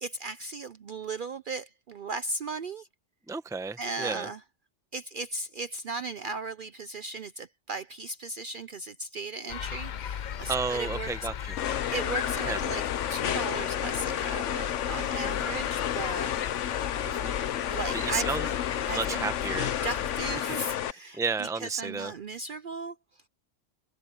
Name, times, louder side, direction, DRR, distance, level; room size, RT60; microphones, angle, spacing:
voice 1, 0.0-2.9 3.8-4.4 4.9-11.3 11.9-12.8 13.1-16.3 17.7-18.6 18.9-19.5 19.8-23.2, right 3 dB, 55° right, 0.7 m, -37 dB
voice 2, 3.3-4.3 10.5-11.6 12.4-12.6 17.0-17.4 17.9-18.5 18.9-19.8 21.1-22.1, right 4 dB, 5° right, 0.9 m, -32 dB
sound 1, 9.5-20.4, left 9 dB, 55° left, 0.5 m, -36 dB
sound 2, 11.6-20.9, left 10 dB, 75° left, 1.1 m, -31 dB
omnidirectional pair, 1.3 m